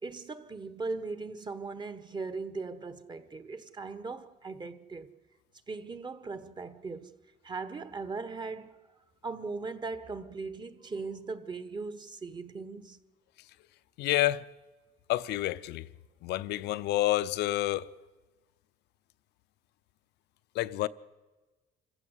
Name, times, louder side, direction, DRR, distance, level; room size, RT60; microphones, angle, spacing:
voice 1, 0.0-5.1 5.7-7.2 7.4-8.9 9.2-13.0, right 4 dB, 25° right, 1.3 m, -39 dB
voice 2, 14.0-14.4 15.1-15.9 16.2-17.9 20.5-20.9, left 15 dB, 80° left, 0.8 m, -28 dB
26.5 x 15.5 x 8.1 m
cardioid pair, 110°, 17 cm